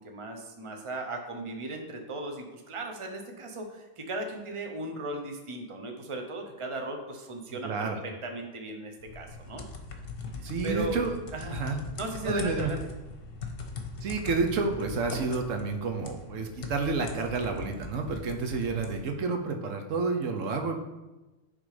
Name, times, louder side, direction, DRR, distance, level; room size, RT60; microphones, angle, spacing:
voice 1, 0.0-9.6 10.4-11.0 11.3-11.6 12.0-12.8, right 2 dB, 25° right, 3 dB, 0.9 m, -37 dB
voice 2, 7.5-8.0 10.4-11.1 11.5-11.8 12.2-12.7 14.0-20.8, right 4 dB, 75° right, 4 dB, 1.2 m, -30 dB
sound 1, 9.0-19.0, left 4 dB, 50° left, 1.1 m, -40 dB
9.5 x 3.8 x 5.0 m, 1.1 s
omnidirectional pair, 1.3 m